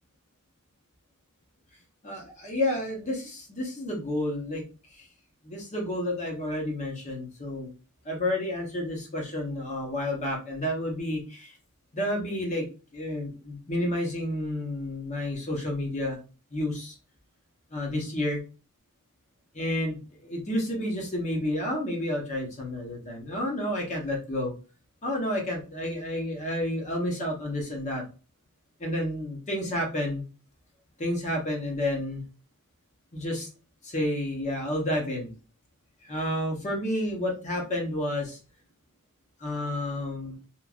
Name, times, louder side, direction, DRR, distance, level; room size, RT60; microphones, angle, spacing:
voice 1, 2.0-4.6 4.9-5.1 5.4-7.7 8.0-11.5 11.9-12.7 12.9-16.2 16.5-16.9 17.7-18.4 19.5-24.5 25.0-28.0 28.8-30.2 31.0-32.2 33.1-33.5 33.8-35.3 36.0-38.4 39.4-40.4, left 1 dB, 35° left, 0 dB, 0.9 m, -30 dB
3.0 x 2.5 x 2.4 m, 0.33 s
head